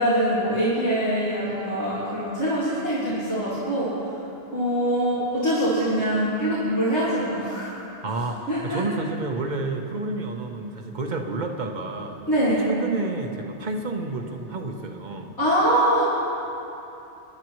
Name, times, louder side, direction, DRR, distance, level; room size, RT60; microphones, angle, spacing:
voice 1, 0.0-3.9 4.5-7.7 8.5-8.8 12.3-12.7 15.4-16.0, right 1 dB, 85° left, -10 dB, 2.6 m, -23 dB
voice 2, 8.0-12.2 12.6-15.3, right 2 dB, 45° right, 4 dB, 1.0 m, -30 dB
22.0 x 11.0 x 3.1 m, 2.9 s
omnidirectional pair, 1.1 m